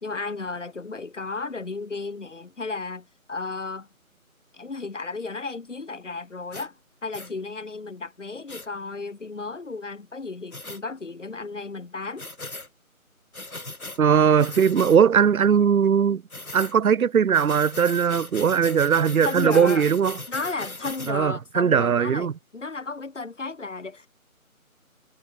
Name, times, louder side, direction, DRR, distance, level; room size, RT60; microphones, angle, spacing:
voice 1, 0.0-3.9 4.5-12.3 19.2-19.9 20.3-24.1, left 3 dB, 60° left, 1.4 m, -34 dB
sound 1, 6.5-6.7 7.1-7.3 8.5-8.7 10.5-10.8 12.2-12.7 13.3-14.0 14.4-15.0 16.3-16.7 17.3-21.1, left 2 dB, 75° left, 4.6 m, -38 dB
voice 2, 14.0-16.2 16.5-20.1 21.1-22.3, right 7 dB, 75° right, 0.6 m, -19 dB
figure-of-eight pair, 160°, 43 cm